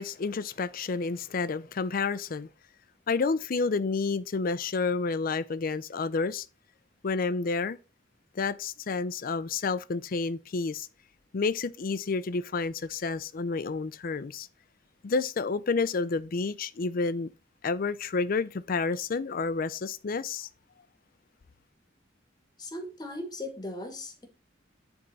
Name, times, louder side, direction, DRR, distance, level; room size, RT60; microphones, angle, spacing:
voice 1, 0.0-2.5 3.1-6.4 7.0-7.8 8.4-10.9 11.3-14.5 15.0-17.3 17.6-20.5, left 4 dB, 50° left, 0.5 m, -30 dB
voice 2, 22.6-24.3, left 1 dB, 20° left, 1.3 m, -38 dB
10.5 x 3.6 x 4.0 m
head